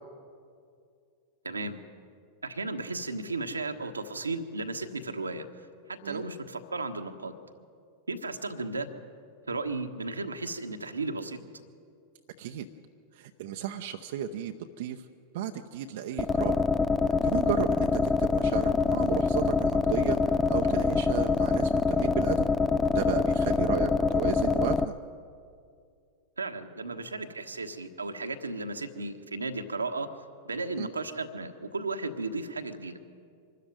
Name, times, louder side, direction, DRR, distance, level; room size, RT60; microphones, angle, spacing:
voice 1, 1.4-1.8 2.4-5.4 5.9-7.4 8.1-8.9 9.5-11.4 26.4-30.1 30.4-33.0, right 3 dB, 80° right, 6 dB, 1.3 m, -34 dB
voice 2, 13.1-15.0 15.3-16.6 17.2-22.5 22.9-25.0 30.8-30.9, right 9 dB, 55° right, 5 dB, 0.8 m, -34 dB
sound 1, 16.2-24.8, left 4 dB, 15° left, 0.5 m, -25 dB
25.0 x 13.5 x 9.2 m, 2.3 s
figure-of-eight pair, 90°, 0 cm